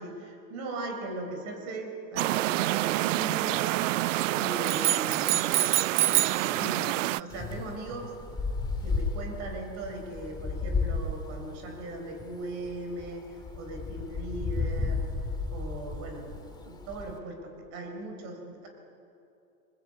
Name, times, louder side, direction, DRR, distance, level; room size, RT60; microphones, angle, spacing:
voice 1, 0.0-5.5 6.4-8.2 8.8-15.1 15.5-18.7, right 2 dB, 35° right, 4 dB, 4.2 m, -39 dB
sound 1, 2.2-7.2, right 17 dB, 60° right, 0.5 m, -28 dB
sound 2, 4.6-6.5, right 12 dB, 85° right, 1.1 m, -26 dB
Wind, 7.3-17.2, left 3 dB, 10° left, 2.0 m, -33 dB
22.0 x 21.0 x 8.5 m, 2.7 s
hypercardioid pair, 140°, 43 cm